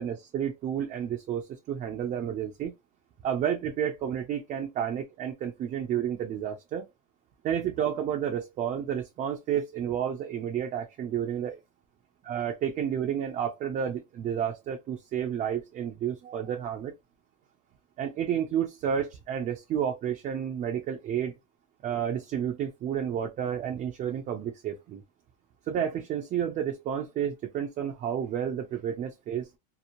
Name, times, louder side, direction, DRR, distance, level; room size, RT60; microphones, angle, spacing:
voice 1, 0.0-2.7 3.2-6.9 7.4-11.6 12.2-16.9 18.0-21.3 21.8-25.0 25.7-29.5, right 9 dB, 30° right, 0.4 m, -31 dB
2.9 x 2.0 x 2.5 m
supercardioid pair, 145°, 30 cm